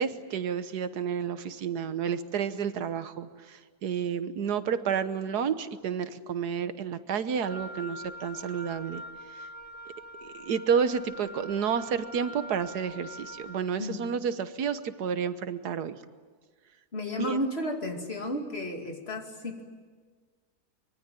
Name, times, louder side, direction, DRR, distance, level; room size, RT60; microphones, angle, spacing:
voice 1, 0.0-9.0 10.2-16.0 17.2-17.3, right 7 dB, 80° right, 11 dB, 1.6 m, -30 dB
Wind instrument woodwind instrument, 7.4-13.7, equal, 55° right, 3.0 m, -44 dB
voice 2, 16.9-19.6, left 1 dB, 40° left, 3 dB, 2.9 m, -32 dB
24.5 x 23.0 x 9.2 m, 1.5 s
omnidirectional pair, 1.7 m